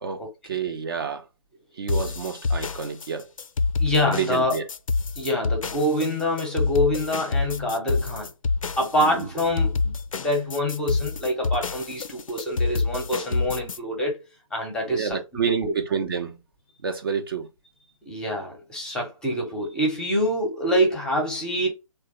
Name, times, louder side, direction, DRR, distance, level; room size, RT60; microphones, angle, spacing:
voice 1, 0.0-1.2 1.8-3.3 4.1-4.7 9.0-9.3 14.9-16.4 16.8-17.5, right 6 dB, 40° right, 0.4 m, -29 dB
sound 1, 1.9-13.8, left 4 dB, 70° left, 0.4 m, -27 dB
voice 2, 3.8-4.6 5.2-8.3 8.8-14.2 14.5-15.2 15.6-15.7 18.1-21.7, left 1 dB, 5° left, 0.6 m, -25 dB
3.1 x 2.2 x 2.8 m
figure-of-eight pair, 135°, 18 cm